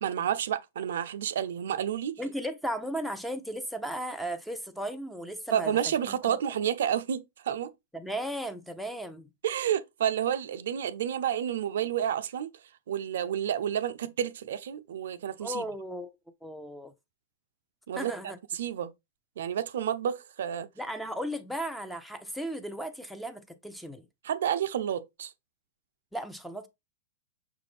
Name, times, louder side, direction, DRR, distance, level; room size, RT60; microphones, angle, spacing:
voice 1, 0.0-2.2 5.5-7.7 9.4-12.5 12.9-15.6 17.9-18.9 19.4-20.7 24.2-25.3, right 9 dB, 70° right, 0.5 m, -30 dB
voice 2, 2.2-6.4 7.9-9.3 15.4-16.1 16.4-16.9 18.0-18.4 20.8-24.1 26.1-26.7, equal, ahead, 0.7 m, -36 dB
5.9 x 2.5 x 3.3 m
hypercardioid pair, 115°, 0 cm